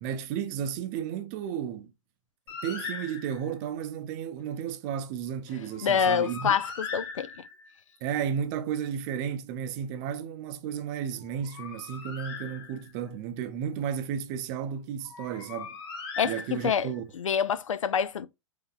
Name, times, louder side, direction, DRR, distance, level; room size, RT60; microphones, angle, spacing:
voice 1, 0.0-1.9 2.6-6.6 8.0-15.7 16.2-17.0, right 8 dB, 35° right, 0.5 m, -33 dB
Bird, 2.5-3.6 5.7-7.8 11.2-13.1 15.0-17.0, left 5 dB, 50° left, 1.1 m, -40 dB
voice 2, 5.8-7.3 16.2-16.9 17.2-18.3, left 7 dB, 85° left, 0.4 m, -26 dB
3.8 x 2.7 x 2.3 m
hypercardioid pair, 120°, 16 cm